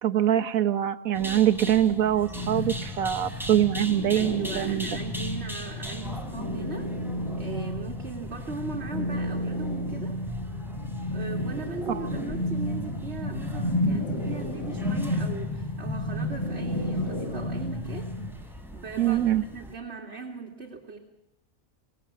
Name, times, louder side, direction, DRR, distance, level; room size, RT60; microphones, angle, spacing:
voice 1, 0.0-4.9 19.0-19.4, right 11 dB, 90° right, 11 dB, 1.4 m, -24 dB
sound 1, 1.1-19.7, equal, ahead, 3.5 m, -42 dB
sound 2, 2.3-18.3, left 1 dB, 20° left, 7.1 m, -31 dB
voice 2, 4.1-6.9 7.4-10.2 11.1-18.1 18.4-21.0, right 4 dB, 50° right, 0 dB, 2.6 m, -39 dB
26.0 x 17.0 x 7.4 m, 0.91 s
omnidirectional pair, 1.4 m